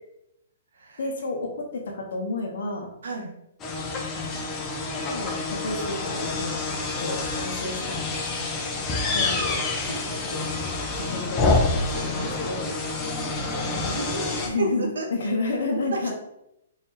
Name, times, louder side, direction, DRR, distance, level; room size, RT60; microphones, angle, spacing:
voice 1, 1.0-2.9 4.1-4.5 4.9-6.6 7.0-8.5 8.9-10.5 10.9-12.7 14.4-16.1, left 2 dB, 65° left, 0 dB, 0.8 m, -31 dB
voice 2, 3.0-3.3 13.5-14.7 15.0-15.1 15.7-15.8, right 3 dB, 75° right, 2 dB, 0.8 m, -32 dB
sound 1, 3.6-14.5, left 3 dB, 25° left, 0.7 m, -28 dB
3.5 x 2.7 x 2.8 m, 0.82 s
hypercardioid pair, 130°, 0 cm